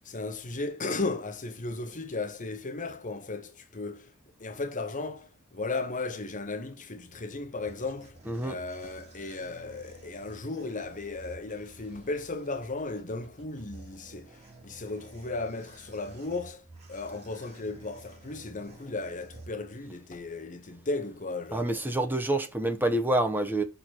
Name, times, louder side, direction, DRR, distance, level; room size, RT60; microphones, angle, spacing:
voice 1, 0.0-4.1 4.4-8.2 8.4-21.8, left 3 dB, 35° left, 0.9 m, -35 dB
sound 1, 7.2-20.1, right 2 dB, 30° right, 2.7 m, -52 dB
voice 2, 8.3-8.6 21.5-23.6, right 1 dB, 10° right, 1.0 m, -27 dB
6.3 x 3.8 x 6.2 m
head